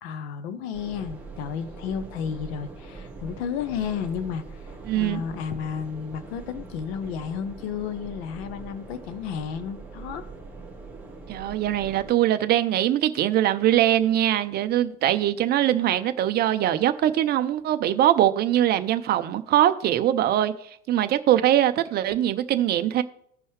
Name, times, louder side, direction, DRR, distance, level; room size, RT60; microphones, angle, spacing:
voice 1, 0.0-10.2, left 7 dB, 55° left, 1.0 m, -32 dB
sound 1, 0.7-12.1, right 3 dB, 5° right, 2.4 m, -42 dB
voice 2, 4.8-5.2 11.3-20.5 20.9-23.0, right 12 dB, 25° right, 0.5 m, -22 dB
15.0 x 5.4 x 3.2 m
figure-of-eight pair, 85°, 36 cm